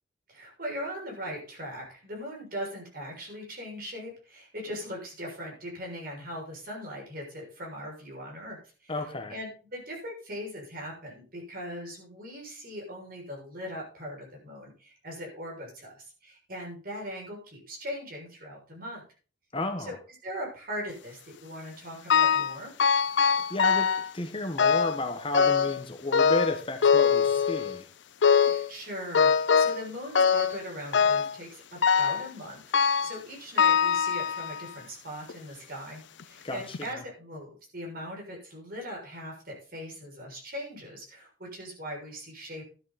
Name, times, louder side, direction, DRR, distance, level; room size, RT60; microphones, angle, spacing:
voice 1, 0.3-8.9 9.3-19.0 19.8-20.0 20.2-22.7 28.4-42.7, equal, 50° right, -1 dB, 6.8 m, -40 dB
voice 2, 8.9-9.3 19.5-20.0 23.5-23.9 24.1-27.9 36.4-37.0, left 2 dB, 30° left, 6 dB, 1.4 m, -32 dB
sound 1, 22.1-22.5 22.8-24.1 24.6-25.0 25.3-25.8 26.1-27.8 28.2-28.7 29.1-29.8 30.2-30.6 30.9-31.4 31.8-32.3 32.7-33.2 33.6-34.6 35.3-35.4 36.2-36.3 36.7-36.8, left 6 dB, 75° left, 0.6 m, -23 dB
13.0 x 10.5 x 4.3 m, 0.38 s
head